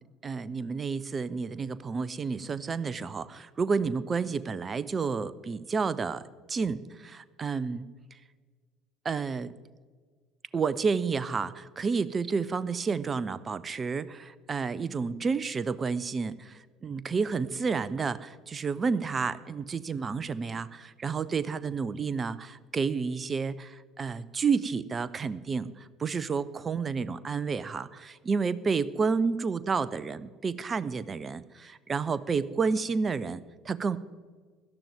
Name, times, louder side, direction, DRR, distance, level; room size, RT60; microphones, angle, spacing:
voice 1, 0.2-8.2 9.0-9.5 10.5-33.4 33.7-34.0, right 5 dB, 25° right, 17 dB, 0.5 m, -30 dB
17.5 x 12.0 x 3.6 m, 1.5 s
figure-of-eight pair, 60°, 0 cm